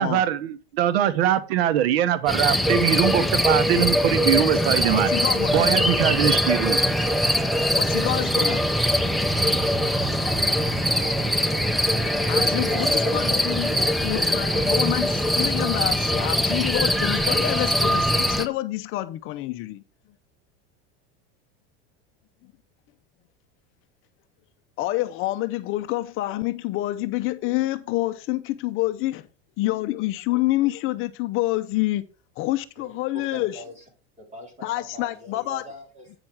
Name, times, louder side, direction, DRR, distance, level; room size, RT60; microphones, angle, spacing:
voice 1, 0.0-5.1 5.5-6.8, right 10 dB, 85° right, 0.9 m, -22 dB
sound 1, 2.3-18.5, equal, ahead, 0.5 m, -22 dB
voice 2, 4.9-5.9 7.8-8.7 12.3-13.7 14.0-19.8 24.8-29.3 29.6-32.0 32.4-33.6 34.6-35.6, left 17 dB, 45° left, 0.6 m, -27 dB
voice 3, 12.4-15.1 32.8-33.8 34.2-36.2, equal, 25° right, 3.7 m, -42 dB
8.8 x 5.9 x 4.6 m
supercardioid pair, 135°, 30 cm